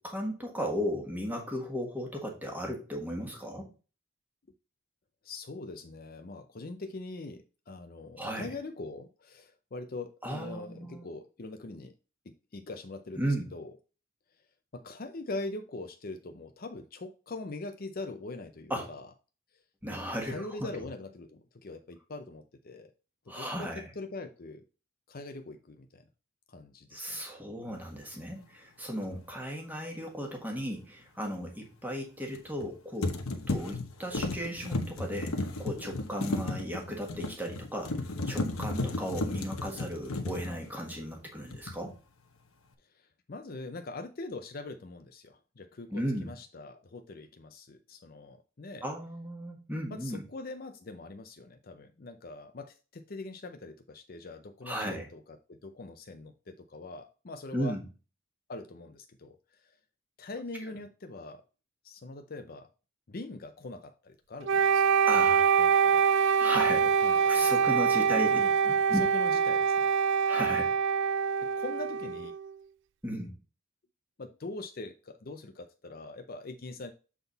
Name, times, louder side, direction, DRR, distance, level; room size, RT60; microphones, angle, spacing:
voice 1, 0.0-3.7 8.2-8.5 10.2-11.0 13.2-13.5 18.7-18.9 19.8-20.7 23.3-23.9 26.9-33.2 33.5-38.0 38.2-42.0 45.9-46.3 48.8-50.2 54.6-55.1 57.5-57.8 65.1-65.6 66.4-68.3 68.6-69.0 70.3-70.8 73.0-73.3, equal, 10° right, 1 dB, 1.6 m, -35 dB
voice 2, 5.2-11.9 12.3-13.7 14.7-19.1 20.2-22.9 23.3-24.6 25.1-26.0 26.5-27.2 42.9-48.8 49.9-57.8 58.5-59.8 60.2-61.4 61.8-62.7 63.1-64.9 65.6-66.0 67.0-67.5 68.1-68.6 68.9-69.9 71.4-72.3 74.2-76.9, left 2 dB, 45° left, 7 dB, 0.6 m, -42 dB
sound 1, 29.0-29.2 32.3-32.7 33.0-41.2 41.5-42.0, left 2 dB, 85° left, 1.0 m, -34 dB
Wind instrument woodwind instrument, 64.5-72.5, right 6 dB, 60° right, 0.3 m, -25 dB
7.3 x 4.0 x 4.0 m, 0.34 s
head